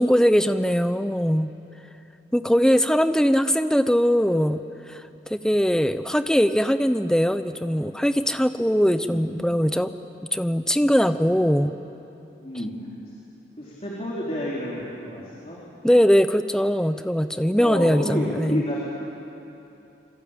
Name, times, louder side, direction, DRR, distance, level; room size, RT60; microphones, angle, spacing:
voice 1, 0.0-1.5 2.3-4.6 4.9-5.0 5.3-9.9 10.3-11.7 15.8-18.6, equal, 5° left, 10 dB, 0.7 m, -21 dB
voice 2, 9.0-9.3 11.0-11.5 12.4-12.7 13.6-15.6 17.6-18.8, equal, 35° left, -5 dB, 3.8 m, -30 dB
27.0 x 23.0 x 8.9 m, 2.9 s
head